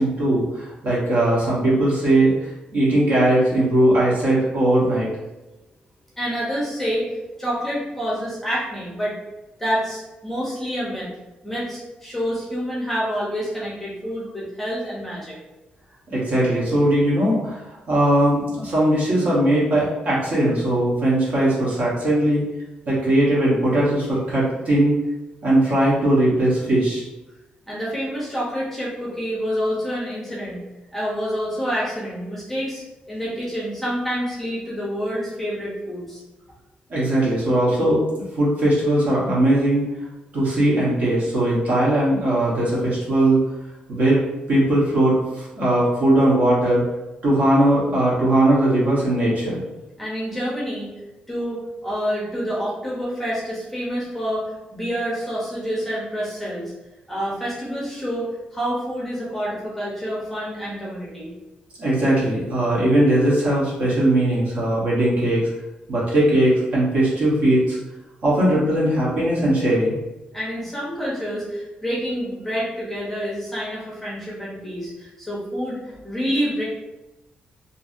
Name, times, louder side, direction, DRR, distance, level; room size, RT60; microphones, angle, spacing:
voice 1, 0.0-2.3 2.7-5.1 16.1-22.4 22.9-25.0 25.4-27.0 36.9-39.8 40.3-43.4 43.9-44.2 44.5-46.8 47.2-49.6 61.8-65.5 65.9-67.8 68.2-70.0, right 1 dB, 55° right, -6 dB, 1.0 m, -19 dB
voice 2, 6.2-7.1 7.4-9.1 9.6-11.1 11.4-15.4 27.7-30.6 30.9-36.2 50.0-50.9 51.3-56.7 57.1-61.3 70.3-76.6, equal, 5° left, -7 dB, 0.7 m, -27 dB
2.6 x 2.6 x 2.5 m, 1.0 s
wide cardioid pair, 175°, 3 cm